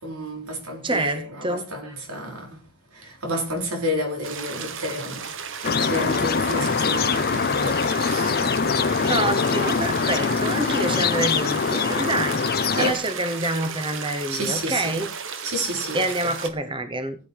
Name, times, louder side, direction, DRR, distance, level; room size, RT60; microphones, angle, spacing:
voice 1, 0.0-2.6 2.9-5.2 5.6-8.5 9.6-9.7 12.8-13.0 14.3-15.0 15.4-16.3, equal, 85° right, 4.6 m, -30 dB
voice 2, 0.8-1.7 9.1-12.5 12.8-15.1 15.9-17.2, right 1 dB, 25° right, 1.0 m, -27 dB
sound 1, 4.2-16.5, right 6 dB, 60° right, 1.4 m, -35 dB
sound 2, 5.6-12.9, left 5 dB, 45° left, 0.6 m, -23 dB
15.0 x 9.0 x 4.7 m
head